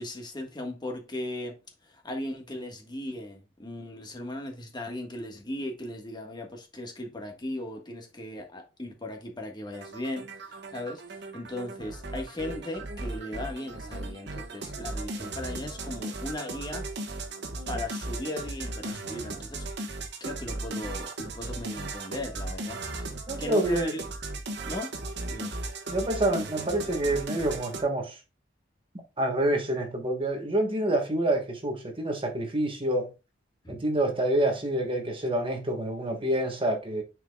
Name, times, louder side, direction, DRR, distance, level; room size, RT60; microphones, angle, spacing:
voice 1, 0.0-16.8 17.7-19.6 20.2-23.1 23.4-24.0 24.6-24.9 25.2-25.5 33.6-33.8, left 1 dB, 25° left, 1.5 m, -37 dB
sound 1, 9.7-27.8, right 2 dB, 60° right, 1.3 m, -37 dB
voice 2, 23.3-23.9 25.9-28.2 29.2-33.1 33.7-37.0, right 1 dB, 30° right, 1.2 m, -27 dB
9.9 x 4.8 x 2.3 m
head